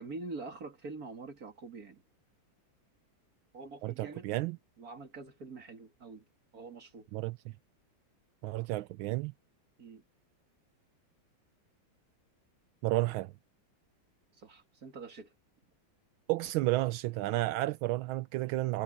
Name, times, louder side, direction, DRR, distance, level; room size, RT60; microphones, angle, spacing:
voice 1, 0.0-2.0 3.5-4.4 4.8-6.2 6.5-7.1 9.8-10.0 14.4-15.3, right 3 dB, 45° right, 2.7 m, -45 dB
voice 2, 3.8-4.6 7.1-7.4 8.4-9.3 12.8-13.3 16.3-18.8, right 18 dB, 85° right, 1.4 m, -31 dB
omnidirectional pair, 2.2 m